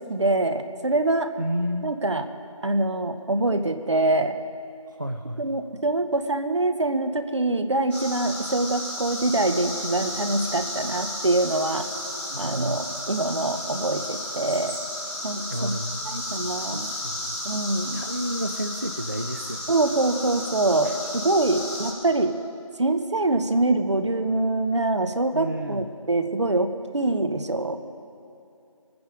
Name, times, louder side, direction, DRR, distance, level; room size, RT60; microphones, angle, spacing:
voice 1, 0.0-1.3 1.8-2.2 2.6-4.3 5.4-11.9 12.4-14.8 15.2-15.7 16.1-16.9 17.4-18.0 19.7-22.3 22.8-26.7 26.9-27.8, right 2 dB, 55° right, 8 dB, 1.0 m, -24 dB
voice 2, 1.4-1.9 4.9-5.4 12.3-12.8 15.5-15.9 16.6-17.4 17.9-19.7 20.8-21.0 25.3-25.9, equal, 35° right, 6 dB, 0.4 m, -31 dB
sound 1, 7.9-21.9, left 1 dB, 20° left, 4.0 m, -33 dB
22.0 x 9.7 x 5.0 m, 2.6 s
figure-of-eight pair, 170°, 18 cm